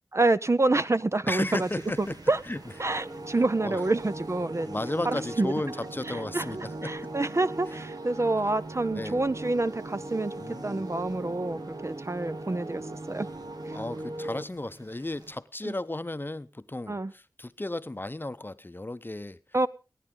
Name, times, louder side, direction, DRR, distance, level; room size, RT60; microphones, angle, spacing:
voice 1, 0.1-1.7 2.0-2.4 2.8-4.7 5.0-5.5 6.3-10.3 10.6-13.3 15.6-15.7 16.9-17.1 19.5-19.7, right 2 dB, 45° right, 13 dB, 0.6 m, -27 dB
voice 2, 1.3-2.2 2.5-2.6 3.3-3.8 4.7-7.0 8.9-9.2 10.4-10.8 13.7-19.4, left 2 dB, 30° left, 13 dB, 0.7 m, -34 dB
sound 1, 1.4-15.3, right 2 dB, 70° right, 1.6 m, -52 dB
sound 2, 2.5-14.4, right 2 dB, 85° right, 1.4 m, -39 dB
20.0 x 9.9 x 3.8 m, 0.32 s
wide cardioid pair, 40°, 7 cm